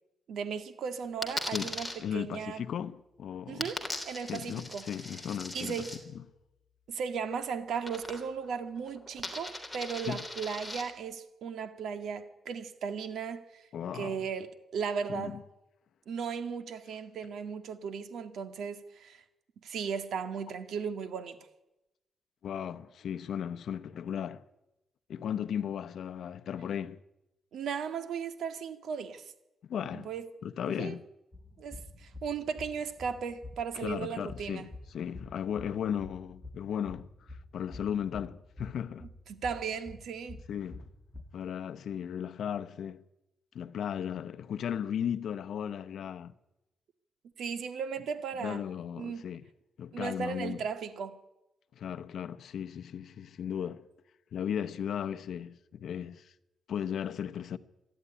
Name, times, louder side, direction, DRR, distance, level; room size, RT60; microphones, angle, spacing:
voice 1, 0.3-2.6 3.5-4.8 5.5-5.9 6.9-13.6 13.9-15.4 16.1-19.2 19.6-21.4 27.5-29.2 29.9-30.3 30.8-31.0 31.6-34.7 39.4-40.4 47.4-48.6 49.0-49.2 49.9-51.2, right 6 dB, 70° right, 1.9 m, -36 dB
Coin (dropping), 1.2-1.9 3.6-6.0 7.8-8.5 8.8-10.8, left 1 dB, 5° left, 3.4 m, -39 dB
voice 2, 1.5-3.7 4.2-5.9 6.1-6.2 10.0-10.2 13.7-14.3 15.1-15.4 22.4-24.4 25.1-27.0 29.6-30.1 30.4-31.1 33.7-39.1 40.5-40.9 41.3-43.0 43.5-46.3 48.4-49.4 49.8-50.6 51.7-53.9 54.3-56.3 56.7-57.6, left 8 dB, 65° left, 0.9 m, -36 dB
sound 1, 31.3-41.2, left 2 dB, 20° left, 1.9 m, -48 dB
27.5 x 11.5 x 9.9 m
wide cardioid pair, 155°, 0 cm